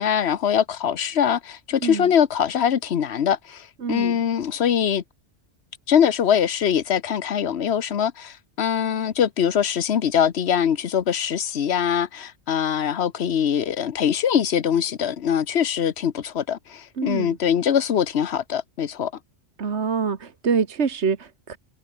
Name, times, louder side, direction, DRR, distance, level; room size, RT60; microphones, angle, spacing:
voice 1, 0.0-5.0 5.9-19.1, left 8 dB, 70° left, 1.2 m, -22 dB
voice 2, 3.8-4.2 17.0-17.4 19.6-21.6, right 5 dB, 70° right, 1.8 m, -25 dB
omnidirectional pair, 1.2 m